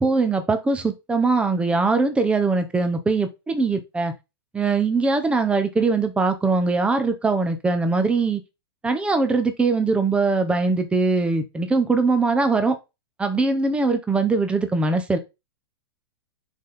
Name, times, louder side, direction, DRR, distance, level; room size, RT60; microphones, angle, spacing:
voice 1, 0.0-4.1 4.5-8.4 8.8-12.8 13.2-15.2, right 3 dB, 10° right, 1.1 m, -21 dB
6.5 x 5.1 x 4.0 m
hypercardioid pair, 145°, 14 cm